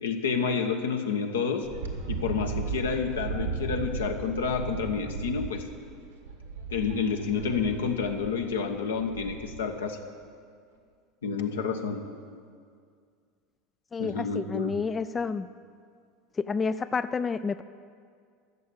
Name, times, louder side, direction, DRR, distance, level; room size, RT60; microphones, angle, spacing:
voice 1, 0.0-1.7 2.1-5.6 6.7-10.0 11.2-12.0 14.0-14.8, left 5 dB, 80° left, 4 dB, 1.2 m, -29 dB
Wind, 1.6-9.8, right 4 dB, 80° right, 1.5 m, -36 dB
voice 2, 13.9-15.5 16.4-17.6, left 5 dB, 25° left, 13 dB, 0.3 m, -29 dB
13.5 x 7.1 x 8.7 m, 2.2 s
hypercardioid pair, 80°, 0 cm